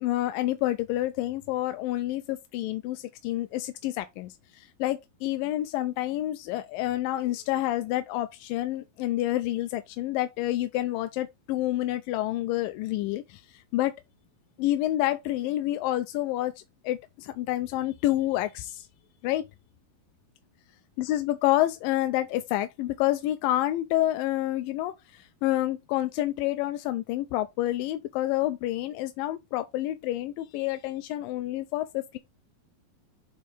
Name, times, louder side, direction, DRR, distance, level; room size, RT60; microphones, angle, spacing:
voice 1, 0.0-13.9 14.6-18.9 19.2-19.5 21.0-32.2, left 15 dB, 80° left, 2.2 m, -28 dB
6.4 x 4.2 x 4.9 m
omnidirectional pair, 4.2 m